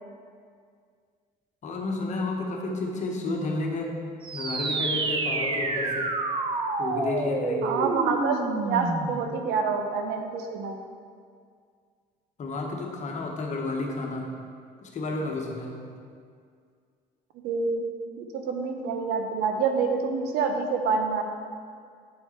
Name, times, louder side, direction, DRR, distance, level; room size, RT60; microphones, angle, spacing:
voice 1, 1.6-4.0 4.3-6.1 6.8-7.8 12.4-14.3 14.8-16.0, left 2 dB, 45° left, 0 dB, 1.2 m, -31 dB
sound 1, 4.2-9.3, right 3 dB, 30° right, 0.6 m, -28 dB
voice 2, 7.6-10.8 17.4-17.8 18.2-21.2, right 5 dB, 85° right, 4 dB, 0.8 m, -27 dB
8.4 x 4.5 x 4.4 m, 2.1 s
cardioid pair, 110°, 17 cm